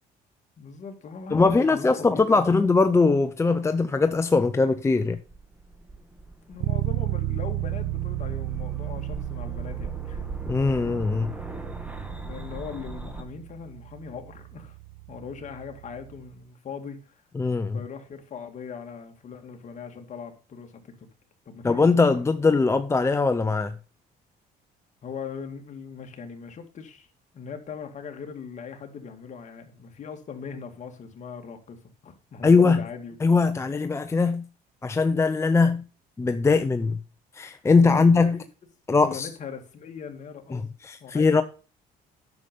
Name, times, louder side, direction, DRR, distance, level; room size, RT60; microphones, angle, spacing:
voice 1, 0.6-2.4 6.5-10.2 12.2-14.8 15.1-17.2 17.7-21.1 21.5-21.9 25.0-27.1 27.3-33.2 37.8-38.4 39.0-40.7 41.0-41.4, left 6 dB, 45° left, 2.1 m, -40 dB
voice 2, 1.3-5.2 10.5-11.3 17.4-17.8 21.6-23.8 32.4-32.8 33.2-34.5 34.8-35.8 36.2-37.0 37.3-38.4 38.9-39.3 40.5-41.4, left 4 dB, 15° left, 0.6 m, -21 dB
sound 1, 5.0-13.2, right 2 dB, 10° right, 1.6 m, -40 dB
Bass guitar, 6.6-16.3, right 16 dB, 80° right, 0.4 m, -33 dB
9.5 x 6.7 x 5.2 m
cardioid pair, 110°, 17 cm